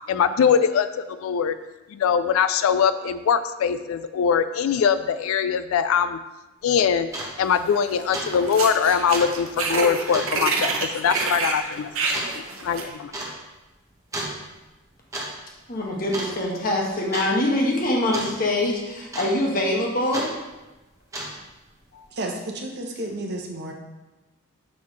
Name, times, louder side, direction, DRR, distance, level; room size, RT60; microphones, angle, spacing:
voice 1, 0.1-1.6 1.9-6.2 6.6-7.1 7.4-11.9 12.3-13.1, left 7 dB, 80° left, 11 dB, 0.3 m, -22 dB
sound 1, 6.6-6.7 7.1-7.3 7.7-7.9 8.1-8.3 8.6-8.7 9.1-9.4 10.1-10.4 11.1-11.3 12.1-12.3 13.1-13.3 14.1-14.4 14.9-15.3 15.6-15.8 16.1-16.6 17.1-17.3 18.1-18.3 19.1-19.5 20.1-20.3 21.0-21.5, right 1 dB, 15° right, 1.0 m, -32 dB
sound 2, 7.5-8.0 8.3-12.9, right 3 dB, 80° right, 0.9 m, -28 dB
voice 2, 15.7-20.3 21.9-22.0, left 1 dB, 40° left, -1 dB, 1.3 m, -24 dB
voice 3, 22.1-23.7, right 1 dB, 50° right, 2 dB, 0.8 m, -31 dB
6.3 x 5.8 x 3.1 m, 1.1 s
head